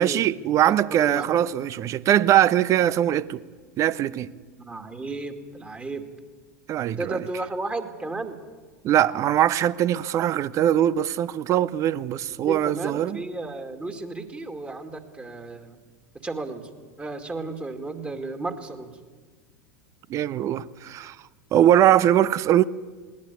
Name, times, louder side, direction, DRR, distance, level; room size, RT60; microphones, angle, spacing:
voice 1, 0.0-3.4 3.8-4.3 6.7-7.3 8.8-13.2 20.1-21.2 21.5-22.7, right 11 dB, 35° right, 0.9 m, -21 dB
voice 2, 0.7-1.3 4.6-6.0 7.0-8.4 12.4-15.8 16.2-16.6 17.0-18.9, right 3 dB, 15° right, 2.4 m, -33 dB
20.5 x 19.0 x 9.5 m
figure-of-eight pair, 80°, 9 cm